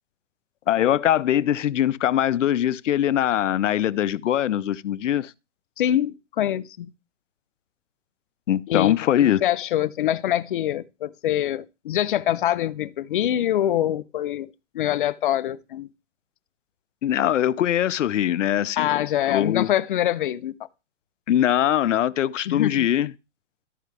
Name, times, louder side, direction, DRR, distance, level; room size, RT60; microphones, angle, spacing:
voice 1, 0.7-5.3 8.5-9.4 17.0-19.7 21.3-23.1, left 11 dB, 90° left, 0.6 m, -22 dB
voice 2, 5.8-6.9 8.7-9.0 9.4-14.5 14.7-15.9 18.8-20.5 22.5-22.9, left 12 dB, 45° left, 0.6 m, -24 dB
14.0 x 4.6 x 3.3 m
hypercardioid pair, 160°, 36 cm